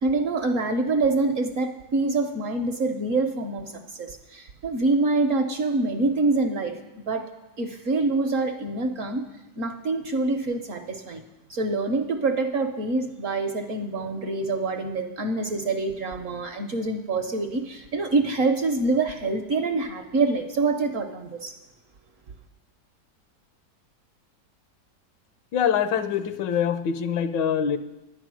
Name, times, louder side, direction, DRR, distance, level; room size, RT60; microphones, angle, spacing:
voice 1, 0.0-6.8 7.1-7.2 7.6-9.2 9.6-11.2 11.5-21.6, right 3 dB, 55° right, 0.9 m, -25 dB
voice 2, 25.5-27.8, left 8 dB, 80° left, 1.3 m, -24 dB
11.0 x 9.1 x 6.2 m
omnidirectional pair, 2.0 m